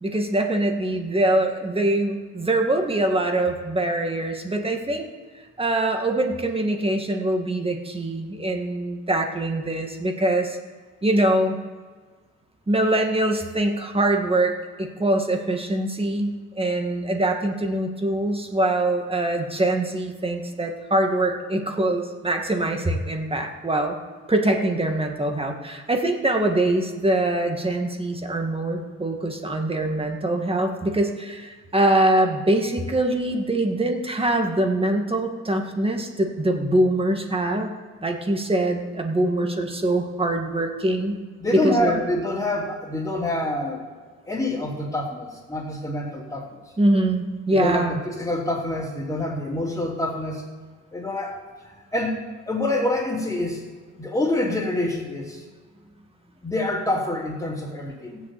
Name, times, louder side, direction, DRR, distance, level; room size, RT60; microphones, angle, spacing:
voice 1, 0.0-5.1 5.6-10.6 11.0-11.6 12.7-24.0 24.3-37.7 38.0-41.2 41.5-42.0 46.8-48.0, right 1 dB, 20° right, 3 dB, 1.9 m, -23 dB
voice 2, 41.4-43.8 44.2-46.5 47.5-50.4 50.9-51.4 51.6-53.7 54.0-55.4 56.4-58.2, left 1 dB, 10° left, -7 dB, 2.9 m, -26 dB
16.5 x 7.3 x 8.3 m, 1.5 s
cardioid pair, 90°, 30 cm